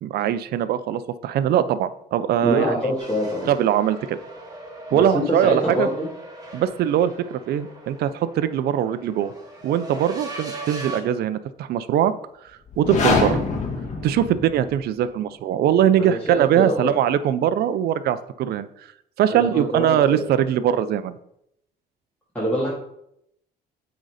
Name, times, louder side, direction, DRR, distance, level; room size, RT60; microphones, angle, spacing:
voice 1, 0.0-2.7 3.5-4.2 4.9-5.9 6.5-9.3 9.6-12.1 12.8-13.4 14.0-18.7 19.2-21.2, right 10 dB, 65° right, 13 dB, 0.5 m, -21 dB
voice 2, 2.4-3.5 4.9-6.1 16.0-16.9 19.3-20.3 22.3-22.8, equal, 5° left, -8 dB, 2.3 m, -25 dB
sound 1, 3.0-11.0, right 2 dB, 20° right, 2.1 m, -39 dB
sound 2, 12.7-14.8, left 3 dB, 40° left, 1.8 m, -24 dB
8.1 x 4.0 x 4.9 m, 0.76 s
cardioid pair, 105°, 18 cm